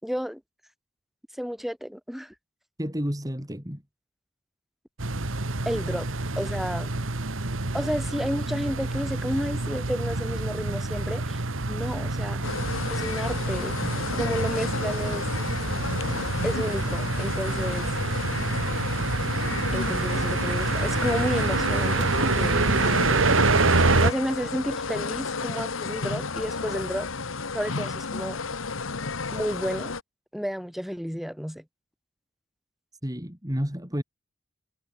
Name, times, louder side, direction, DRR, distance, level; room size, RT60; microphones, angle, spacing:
voice 1, 0.0-0.4 1.4-2.3 5.7-6.1 6.4-6.9 7.7-11.4 11.7-12.4 12.9-13.7 14.1-15.3 16.4-17.9 19.7-22.8 24.0-27.1 27.5-28.4 29.3-29.9 30.3-31.6, equal, ahead, 7.6 m, -31 dB
voice 2, 2.8-3.8 33.0-34.0, equal, 20° right, 4.1 m, -30 dB
sound 1, 5.0-24.1, right 3 dB, 80° right, 1.7 m, -26 dB
sound 2, 12.4-30.0, left 4 dB, 90° left, 1.4 m, -32 dB
head